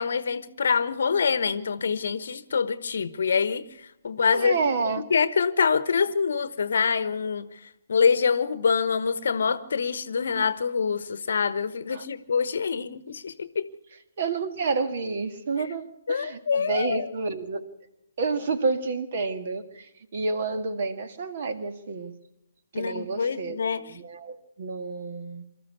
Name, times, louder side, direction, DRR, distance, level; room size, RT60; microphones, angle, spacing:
voice 1, 0.0-4.6 4.9-7.5 7.9-13.7 15.6-15.7 16.1-17.1 22.7-23.8, left 6 dB, 55° left, 1.1 m, -25 dB
voice 2, 4.3-5.0 11.9-12.0 14.2-17.6 18.2-22.1 22.8-23.6 23.8-25.4, right 4 dB, 45° right, 2.0 m, -29 dB
24.5 x 13.5 x 8.4 m
figure-of-eight pair, 130°, 0 cm